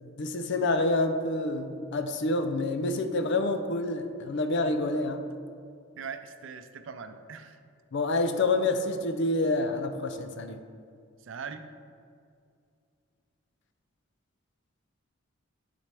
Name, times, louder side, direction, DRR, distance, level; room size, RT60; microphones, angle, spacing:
voice 1, 0.0-5.2 7.9-10.6, left 2 dB, 60° left, 8 dB, 0.5 m, -28 dB
voice 2, 6.0-7.6 11.2-11.6, right 6 dB, 65° right, 8 dB, 0.5 m, -40 dB
11.0 x 4.2 x 3.4 m, 2.3 s
head